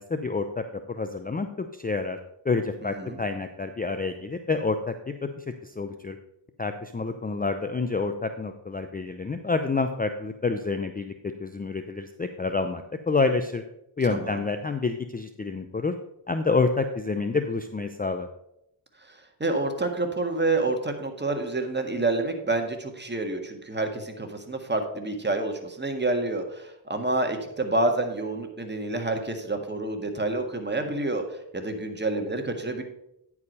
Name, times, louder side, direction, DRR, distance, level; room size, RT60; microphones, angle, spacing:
voice 1, 0.0-2.2 2.4-6.2 6.6-13.6 14.0-15.9 16.3-18.3, left 4 dB, 20° left, 8 dB, 0.6 m, -28 dB
voice 2, 2.8-3.2 14.1-14.4 19.1-32.8, right 2 dB, 20° right, 4 dB, 1.7 m, -28 dB
9.6 x 4.8 x 5.4 m, 0.81 s
supercardioid pair, 55°, 49 cm